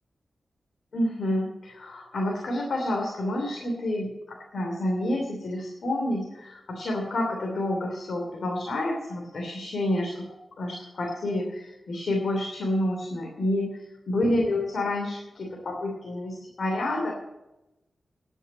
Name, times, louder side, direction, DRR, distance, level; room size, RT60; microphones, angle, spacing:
voice 1, 0.9-10.3 10.6-17.1, left 1 dB, 75° left, 0 dB, 3.0 m, -29 dB
11.5 x 9.0 x 8.9 m, 0.97 s
wide cardioid pair, 80°, 0 cm